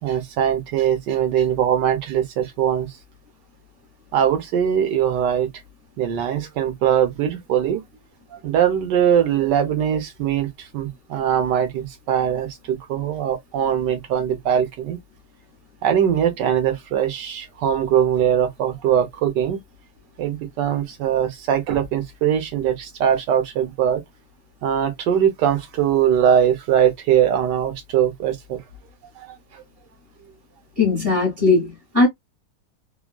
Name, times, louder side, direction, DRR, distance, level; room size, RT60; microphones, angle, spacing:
voice 1, 0.0-2.9 4.1-5.5 6.0-7.8 8.4-15.0 15.8-19.6 20.2-24.0 24.6-28.6 29.2-29.3, right 9 dB, 80° right, 1.4 m, -21 dB
voice 2, 30.8-32.1, left 3 dB, 35° right, 1.7 m, -18 dB
3.6 x 2.3 x 2.2 m
omnidirectional pair, 1.9 m